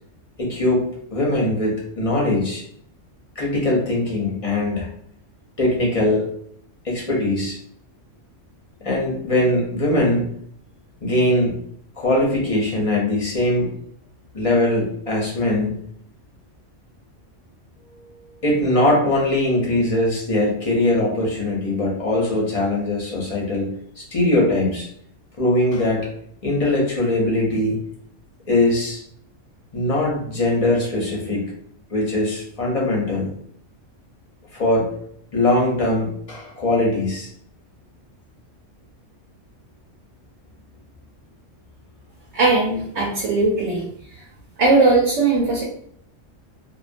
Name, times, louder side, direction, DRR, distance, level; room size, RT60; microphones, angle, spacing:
voice 1, 0.4-0.8 1.1-2.6 3.4-4.9 5.6-6.3 6.8-7.6 8.8-10.3 11.0-11.6 12.0-13.7 14.3-15.9 18.4-23.7 24.0-24.9 25.4-26.1 26.4-27.8 28.5-29.0 29.7-31.5 31.9-33.3 34.5-34.9 35.3-37.3, left 1 dB, 45° left, -3 dB, 0.5 m, -21 dB
voice 2, 42.3-43.8 44.6-45.6, right 3 dB, 75° right, -3 dB, 1.0 m, -18 dB
2.4 x 2.2 x 2.5 m, 0.64 s
omnidirectional pair, 1.3 m